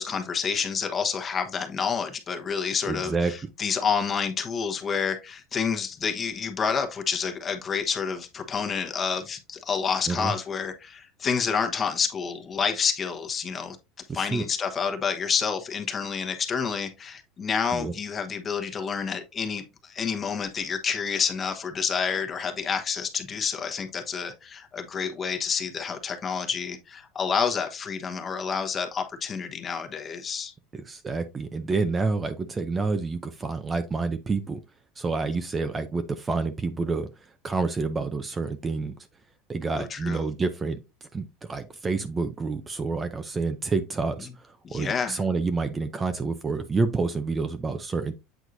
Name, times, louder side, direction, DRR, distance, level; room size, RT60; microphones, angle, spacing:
voice 1, 0.0-13.8 14.1-30.5 39.7-40.2 44.6-45.2, left 6 dB, 25° left, 1.1 m, -29 dB
voice 2, 2.8-3.3 10.1-10.3 14.1-14.4 17.7-17.9 30.7-34.6 35.0-37.1 37.4-38.9 39.5-48.1, right 4 dB, 20° right, 0.6 m, -28 dB
8.1 x 4.5 x 2.6 m
supercardioid pair, 135°, 0 cm